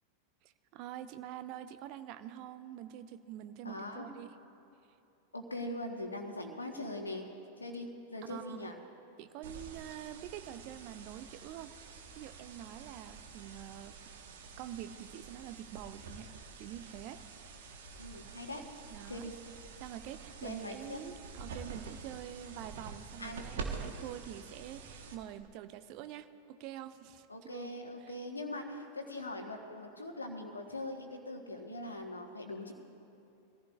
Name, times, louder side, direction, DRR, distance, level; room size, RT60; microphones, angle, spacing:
voice 1, 0.4-4.3 8.3-8.7 9.2-11.7 12.2-14.0 14.6-16.3 16.6-17.2 18.9-19.3 19.8-27.7 28.0-28.1, right 11 dB, 45° right, 11 dB, 0.6 m, -46 dB
voice 2, 3.6-4.1 5.3-7.2 7.6-8.8 18.0-18.6 19.1-19.4 20.4-21.0 23.2-23.4 27.3-32.7, left 1 dB, 80° left, 4 dB, 1.5 m, -41 dB
sound 1, 9.4-25.4, right 4 dB, 60° right, 1.3 m, -47 dB
24.0 x 14.5 x 2.5 m, 2.8 s
figure-of-eight pair, 90°, 0 cm